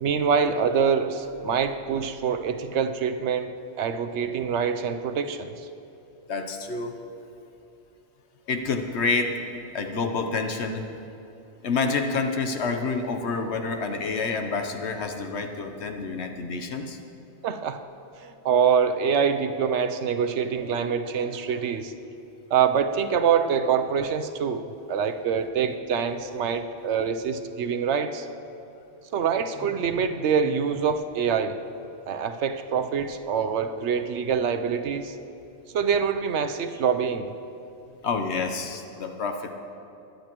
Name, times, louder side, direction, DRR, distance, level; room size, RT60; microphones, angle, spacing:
voice 1, 0.0-5.5 17.4-17.8 18.2-21.9 22.5-28.3 29.1-31.6 32.1-35.2 35.7-37.3, right 6 dB, 70° right, 9 dB, 0.9 m, -25 dB
voice 2, 6.3-7.0 8.5-9.4 9.7-10.8 11.6-17.0 30.0-30.1 38.0-39.5, left 4 dB, 65° left, 5 dB, 1.1 m, -28 dB
20.5 x 10.5 x 3.0 m, 2.8 s
omnidirectional pair, 1.2 m